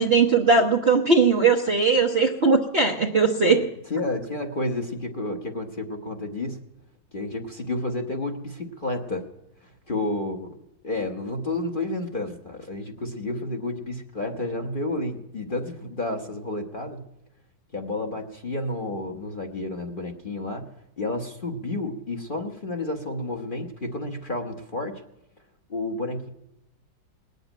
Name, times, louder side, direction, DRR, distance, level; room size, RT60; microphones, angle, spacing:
voice 1, 0.0-3.6, right 4 dB, 45° right, 2 dB, 0.9 m, -19 dB
voice 2, 3.9-6.6 7.1-9.3 9.6-10.6 10.8-17.0 17.7-20.7 21.0-25.0 25.7-26.3, left 2 dB, 35° left, 3 dB, 1.1 m, -31 dB
20.0 x 8.2 x 8.9 m, 0.88 s
omnidirectional pair, 2.0 m